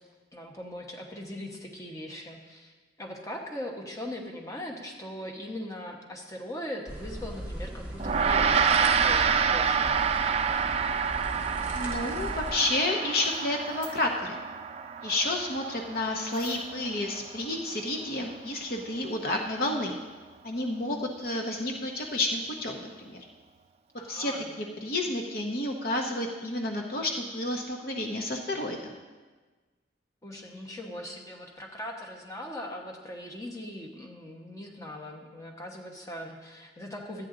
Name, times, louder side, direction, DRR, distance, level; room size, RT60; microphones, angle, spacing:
voice 1, 0.3-10.0 24.0-24.5 30.2-37.3, left 1 dB, 15° left, 0 dB, 1.0 m, -40 dB
sound 1, 6.9-12.5, right 1 dB, 10° right, 1.4 m, -38 dB
Gong, 8.0-17.5, right 6 dB, 35° right, 0.3 m, -28 dB
voice 2, 11.7-14.4 15.0-20.0 20.4-23.2 24.1-24.3 24.6-28.9, left 2 dB, 50° left, 2 dB, 0.8 m, -30 dB
sound 2, 13.2-14.2 16.3-16.9, left 2 dB, 85° left, 3.6 m, -50 dB
12.5 x 9.1 x 3.8 m, 1.3 s
head